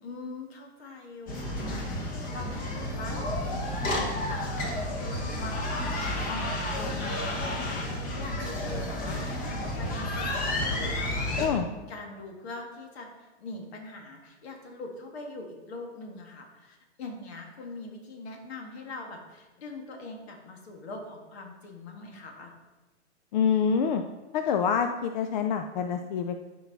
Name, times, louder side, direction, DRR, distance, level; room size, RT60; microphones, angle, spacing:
voice 1, 0.0-4.7 5.0-11.3 11.6-13.1 13.4-22.5, left 2 dB, 60° left, 2 dB, 2.0 m, -42 dB
sound 1, 1.3-11.5, left 1 dB, 25° left, 1.2 m, -31 dB
voice 2, 23.3-24.0 24.3-26.4, left 7 dB, 40° left, 7 dB, 0.4 m, -26 dB
12.0 x 4.7 x 4.0 m, 1.2 s
hypercardioid pair, 145°, 35 cm